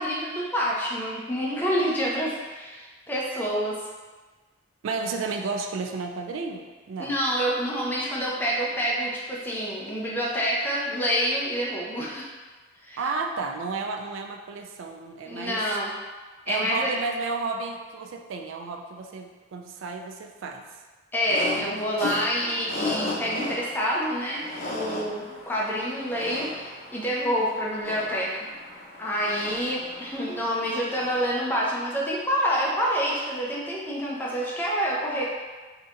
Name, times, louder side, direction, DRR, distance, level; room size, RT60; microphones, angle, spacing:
voice 1, 0.0-3.8 7.0-12.3 12.8-13.0 15.3-15.9 16.5-17.0 21.1-24.4 24.7-28.4 29.0-35.2, equal, 10° left, -5 dB, 0.5 m, -27 dB
voice 2, 4.8-7.1 13.0-15.6 16.5-20.6, right 4 dB, 85° right, 4 dB, 0.3 m, -32 dB
sound 1, 21.2-31.6, left 2 dB, 50° left, 0.6 m, -36 dB
4.0 x 2.8 x 2.5 m, 1.3 s
head